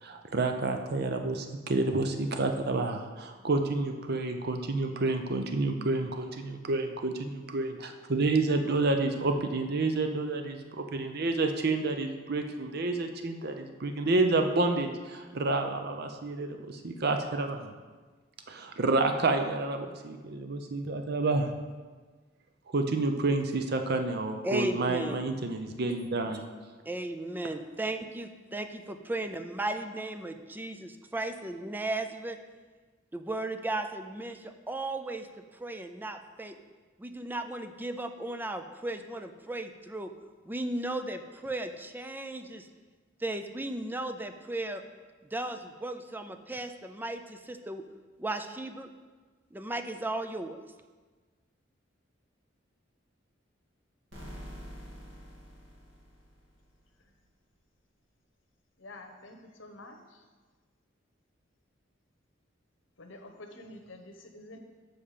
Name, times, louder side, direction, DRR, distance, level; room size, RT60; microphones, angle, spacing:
voice 1, 0.0-17.7 18.5-21.5 22.7-26.5, right 2 dB, 55° right, 5 dB, 0.7 m, -29 dB
voice 2, 24.4-25.2 26.9-32.4 33.1-35.3 35.6-36.6 37.0-40.1 40.4-42.7 43.2-44.8 45.3-47.8 48.2-48.9 49.5-50.6, right 2 dB, 10° right, 8 dB, 0.4 m, -35 dB
sound 1, 54.1-56.8, equal, 75° right, 2.3 m, -46 dB
voice 3, 58.8-60.0 63.0-64.6, left 2 dB, 85° left, 4 dB, 1.0 m, -48 dB
7.4 x 5.7 x 5.0 m, 1.4 s
head